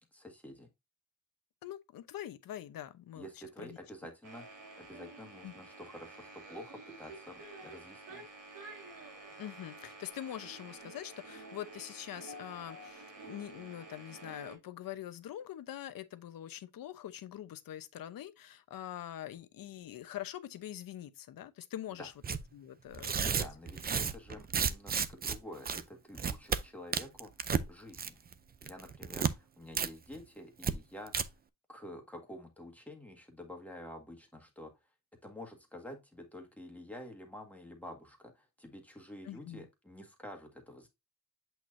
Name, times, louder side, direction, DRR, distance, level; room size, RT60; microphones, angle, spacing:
voice 1, 0.1-0.7 3.1-4.5 4.8-8.2 22.0-22.1 23.3-27.3 27.7-28.2 28.6-31.3 31.7-34.7 35.2-40.9, left 1 dB, 5° left, 1.7 m, -49 dB
voice 2, 1.6-3.3 3.6-3.8 5.4-5.5 9.4-22.1 22.5-23.5 39.2-39.7, left 12 dB, 85° left, 0.9 m, -44 dB
sound 1, 4.2-14.6, right 2 dB, 80° right, 2.9 m, -50 dB
Tearing, 22.2-22.4 22.9-25.4 25.6-25.8 26.1-26.6 26.9-27.6 27.9-28.3 28.6-29.3 29.7-29.9 30.1-30.2 30.6-30.7 31.1-31.2, right 6 dB, 30° right, 0.5 m, -32 dB
8.2 x 4.5 x 2.6 m
wide cardioid pair, 155°, 33 cm